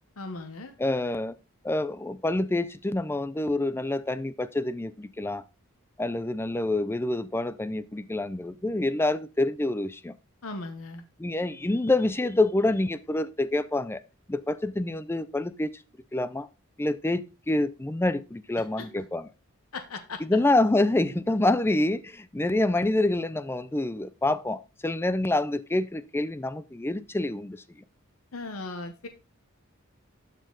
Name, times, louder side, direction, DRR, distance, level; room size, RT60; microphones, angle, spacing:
voice 1, 0.2-0.7 10.4-11.0 18.8-18.9 19.7-20.2 28.3-29.1, left 3 dB, 80° left, 1.0 m, -37 dB
voice 2, 0.8-1.4 1.6-5.4 6.0-10.2 11.2-14.0 14.3-15.7 16.1-16.5 16.8-19.3 20.2-27.6, left 2 dB, 10° left, 0.4 m, -27 dB
12.0 x 4.4 x 3.9 m
head